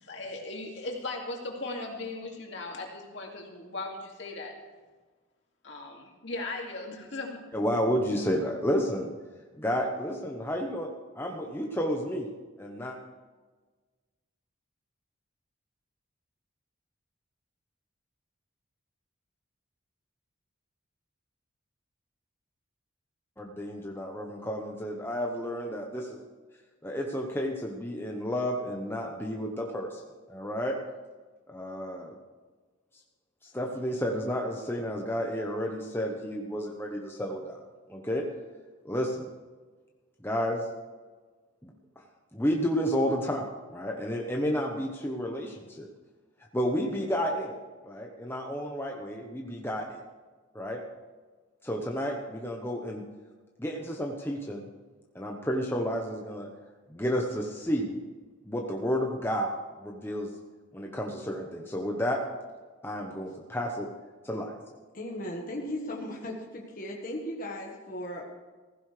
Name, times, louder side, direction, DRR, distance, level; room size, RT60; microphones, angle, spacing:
voice 1, 0.0-4.5 5.6-7.4, left 2 dB, 60° left, 0 dB, 2.3 m, -38 dB
voice 2, 7.5-9.1 9.6-10.9 11.1-12.3 12.6-13.0 23.4-26.2 26.8-30.0 30.3-30.7 31.5-32.1 33.5-37.6 37.9-38.2 38.8-39.3 40.2-40.6 41.6-41.7 42.3-45.9 46.5-47.6 47.8-50.0 50.5-50.8 51.6-53.0 53.6-54.7 55.1-56.5 56.9-58.0 58.4-60.3 60.7-62.2 62.8-63.9 64.2-64.6, equal, 10° left, 0 dB, 0.9 m, -31 dB
voice 3, 64.9-68.3, left 1 dB, 40° left, -1 dB, 1.5 m, -37 dB
15.5 x 15.5 x 3.3 m, 1.3 s
head